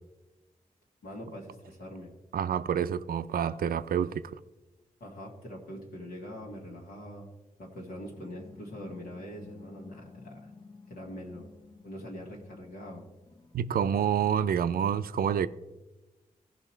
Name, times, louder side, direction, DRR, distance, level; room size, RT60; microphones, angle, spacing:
voice 1, 1.0-2.1 5.0-7.3 7.6-10.5 10.9-11.5 11.8-13.1, equal, 85° left, 1.9 m, -43 dB
voice 2, 2.3-4.4 13.5-15.5, right 8 dB, 80° right, 0.4 m, -28 dB
sound 1, 7.9-13.6, left 4 dB, 30° left, 1.1 m, -52 dB
15.5 x 5.3 x 4.4 m
cardioid pair, 45°, 15 cm